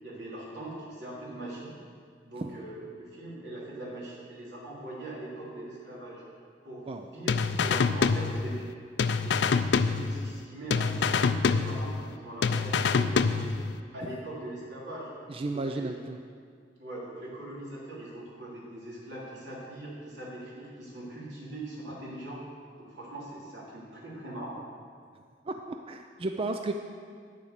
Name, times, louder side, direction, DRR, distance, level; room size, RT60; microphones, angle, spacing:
voice 1, 0.0-1.7 2.2-6.2 6.6-8.7 9.2-13.5 13.9-15.1 15.5-15.9 16.8-22.4 22.8-24.6, right 1 dB, 85° right, -6 dB, 3.3 m, -41 dB
sound 1, 7.3-8.7 9.0-10.4 10.7-12.1 12.4-13.7, left 5 dB, 80° left, 0.4 m, -26 dB
voice 2, 15.3-16.2 25.5-26.7, right 2 dB, 30° right, 5 dB, 0.4 m, -33 dB
9.4 x 7.0 x 6.6 m, 2.1 s
head